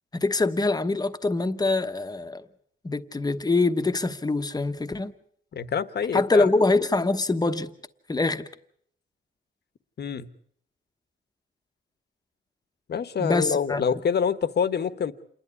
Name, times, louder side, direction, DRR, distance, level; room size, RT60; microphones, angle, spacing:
voice 1, 0.1-2.4 2.8-5.1 6.1-7.7 8.1-8.5 13.2-13.8, left 3 dB, 20° left, 1.1 m, -24 dB
voice 2, 5.5-6.5 10.0-10.3 12.9-15.1, left 7 dB, 60° left, 1.2 m, -26 dB
28.0 x 11.0 x 9.6 m
wide cardioid pair, 125°, 19 cm